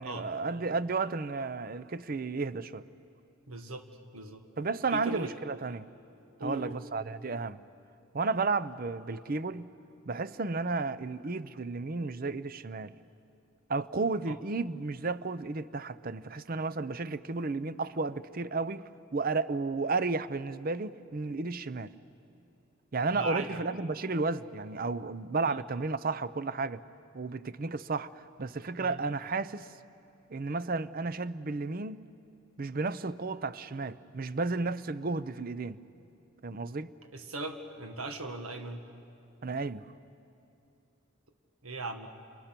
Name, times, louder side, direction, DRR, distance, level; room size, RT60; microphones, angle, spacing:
voice 1, 0.0-2.8 4.6-5.9 6.4-7.6 8.1-9.7 10.1-12.9 13.7-21.9 22.9-26.8 27.1-29.7 30.3-32.0 32.6-35.8 36.4-36.9 39.4-39.8, right 3 dB, 40° right, 0.6 m, -33 dB
voice 2, 3.5-3.9 4.1-4.4 4.9-5.3 6.4-6.8 14.3-14.4 23.1-23.6 25.4-25.6 28.8-29.0 37.1-38.8 41.6-42.1, right 2 dB, 80° right, 1.7 m, -38 dB
29.5 x 28.0 x 6.0 m
head